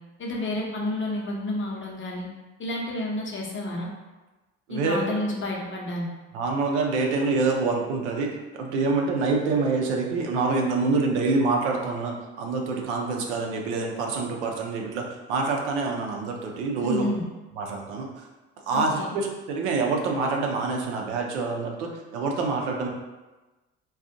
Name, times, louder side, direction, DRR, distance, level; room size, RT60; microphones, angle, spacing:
voice 1, 0.2-2.3 2.6-3.9 4.7-6.1 16.8-17.3 18.7-19.2, left 1 dB, 35° left, -2 dB, 0.9 m, -30 dB
voice 2, 4.7-5.2 6.3-17.1 17.6-18.1 18.7-22.9, right 3 dB, 85° right, 1 dB, 0.6 m, -26 dB
2.5 x 2.4 x 3.7 m, 1.2 s
hypercardioid pair, 60°, 34 cm